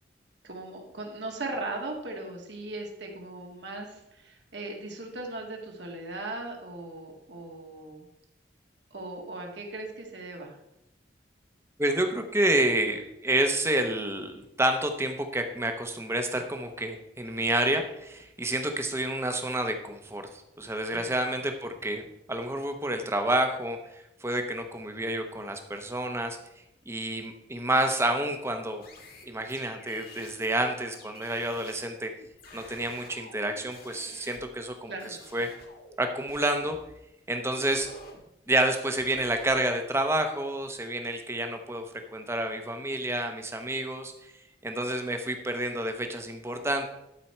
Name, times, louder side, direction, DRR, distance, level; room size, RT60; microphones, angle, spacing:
voice 1, 0.4-8.1 8.9-10.6 20.9-21.1 34.9-35.2, right 2 dB, 65° right, 1 dB, 1.7 m, -38 dB
voice 2, 11.8-22.0 22.3-26.4 26.9-28.8 29.3-32.1 32.5-35.5 36.0-36.8 37.3-37.9 38.5-41.9 42.1-44.3 44.6-46.8, right 1 dB, 15° right, 6 dB, 0.8 m, -29 dB
sound 1, 28.8-30.5 30.9-34.7 35.0-36.9 37.6-38.2 38.8-39.6, left 1 dB, 50° left, 1.6 m, -49 dB
12.5 x 4.5 x 4.4 m, 0.87 s
head